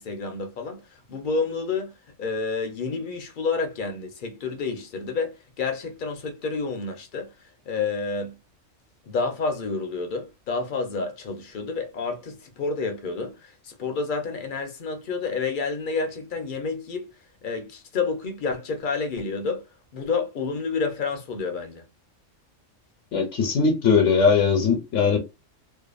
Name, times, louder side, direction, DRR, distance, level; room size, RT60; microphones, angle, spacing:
voice 1, 0.0-1.9 2.2-8.4 9.0-17.1 17.4-21.9, left 4 dB, 55° left, 0.6 m, -29 dB
voice 2, 23.1-25.2, left 5 dB, 80° left, 1.0 m, -20 dB
2.6 x 2.3 x 2.3 m
omnidirectional pair, 1.3 m